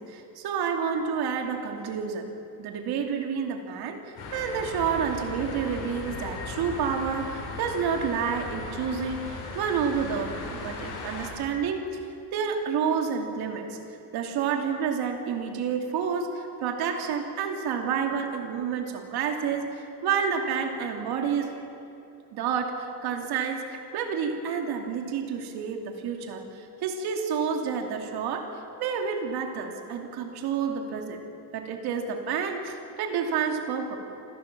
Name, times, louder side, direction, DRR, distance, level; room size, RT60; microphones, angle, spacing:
voice 1, 0.0-2.3 2.6-11.8 12.3-13.8 14.1-21.5 22.3-23.7 23.9-28.5 28.8-31.2 31.5-34.0, right 6 dB, 70° right, 4 dB, 2.8 m, -29 dB
sound 1, 4.2-11.3, left 3 dB, 65° left, 6.5 m, -37 dB
27.0 x 15.5 x 7.4 m, 2.8 s
cardioid pair, 150°, 40 cm